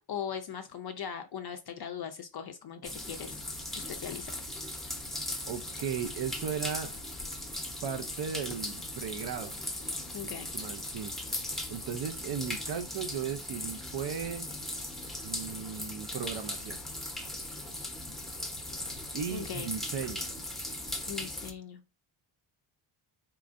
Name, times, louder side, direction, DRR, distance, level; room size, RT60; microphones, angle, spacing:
voice 1, 0.0-3.4 3.8-4.3 10.1-10.5 19.3-19.7 21.1-21.8, left 8 dB, 50° left, 0.5 m, -39 dB
sound 1, 2.8-21.5, left 1 dB, ahead, 0.6 m, -38 dB
voice 2, 5.4-6.9 7.8-9.6 10.2-11.2 11.7-14.5 15.2-16.8 19.1-20.3, right 7 dB, 60° right, 0.5 m, -36 dB
4.3 x 3.8 x 2.5 m
wide cardioid pair, 170°, 49 cm